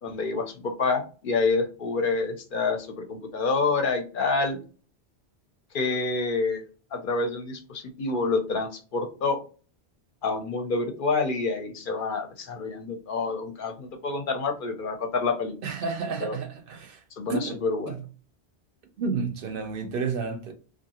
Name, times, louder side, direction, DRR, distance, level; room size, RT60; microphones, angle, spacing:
voice 1, 0.0-4.6 5.7-6.6 6.9-9.4 10.2-15.6 16.2-16.4 17.1-18.0, left 3 dB, 60° left, 0.7 m, -27 dB
voice 2, 15.6-17.0 17.3-17.6 17.9-18.0 19.0-20.5, right 5 dB, 60° right, 0.7 m, -31 dB
2.7 x 2.4 x 2.7 m
omnidirectional pair, 1.1 m